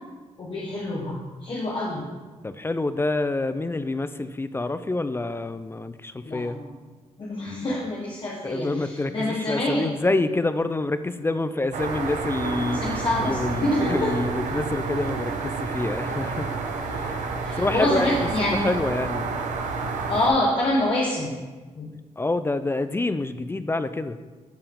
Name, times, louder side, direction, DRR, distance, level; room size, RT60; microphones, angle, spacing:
voice 1, 0.4-2.0 6.2-6.7 7.2-9.9 12.7-14.2 17.4-18.7 20.1-21.4 21.7-22.0, left 1 dB, 40° left, -4 dB, 1.3 m, -26 dB
voice 2, 2.4-6.6 8.4-16.5 16.9-17.3 17.6-18.2 18.5-19.3 22.2-24.2, left 2 dB, 20° left, 12 dB, 0.4 m, -27 dB
sound 1, 11.7-20.3, right 4 dB, 75° right, 0.9 m, -29 dB
10.5 x 4.5 x 3.7 m, 1.3 s
cardioid pair, 70°, 13 cm